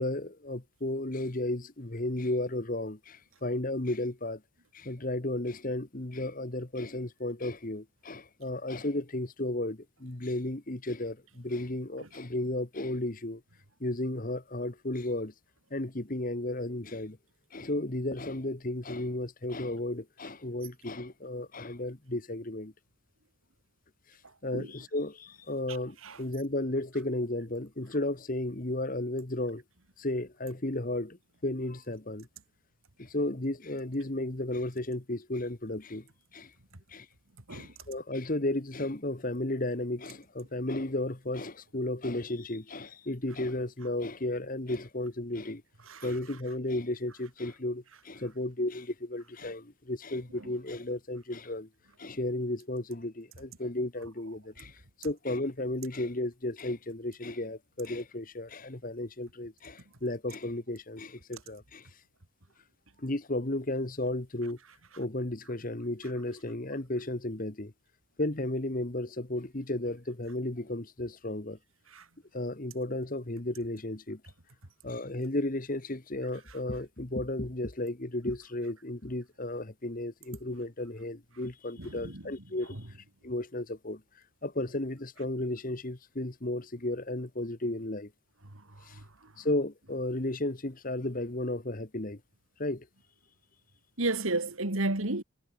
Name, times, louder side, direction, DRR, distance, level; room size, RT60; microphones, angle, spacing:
voice 1, 0.0-4.4 4.7-13.4 13.8-15.3 15.7-17.2 17.5-22.7 24.4-29.6 30.0-31.2 31.4-32.3 33.0-36.1 36.3-36.5 36.9-37.1 37.5-45.6 46.0-51.7 52.0-61.9 63.0-64.6 65.0-67.7 68.2-71.6 72.3-74.2 74.8-82.7 83.2-84.0 84.4-88.1 88.9-89.0 89.4-92.2 92.6-92.9, left 1 dB, 40° left, 1.5 m, -34 dB
voice 2, 81.8-82.3 82.7-82.8 88.9-89.0 94.0-95.2, right 2 dB, 80° right, 2.7 m, -32 dB
head